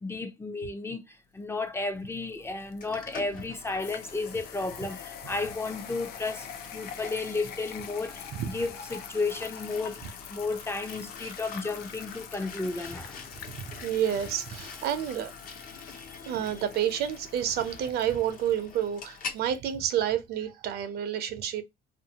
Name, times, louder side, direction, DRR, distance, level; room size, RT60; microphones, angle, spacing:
voice 1, 0.0-13.3 15.9-16.5, left 3 dB, 15° left, 0.5 m, -33 dB
sound 1, 1.6-19.6, left 8 dB, 75° left, 0.5 m, -46 dB
sound 2, 2.8-19.4, left 5 dB, 55° left, 0.9 m, -46 dB
voice 2, 13.5-15.3 16.3-21.6, right 10 dB, 70° right, 0.6 m, -29 dB
2.7 x 2.5 x 2.8 m
cardioid pair, 110°, 17 cm